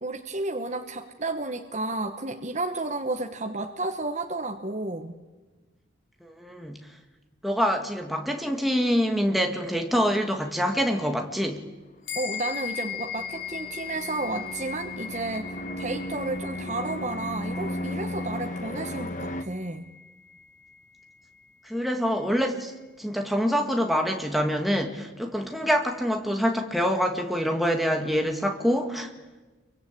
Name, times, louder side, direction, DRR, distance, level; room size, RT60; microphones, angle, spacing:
voice 1, 0.0-5.2 12.1-19.9, right 2 dB, 35° right, 5 dB, 1.2 m, -32 dB
voice 2, 6.2-6.9 7.4-11.6 21.6-22.7 23.0-29.1, equal, ahead, 4 dB, 1.9 m, -25 dB
sound 1, 12.1-21.8, left 9 dB, 65° left, 3.1 m, -39 dB
sound 2, 12.1-19.4, left 1 dB, 40° left, 1.3 m, -35 dB
26.5 x 24.0 x 8.4 m, 1.2 s
head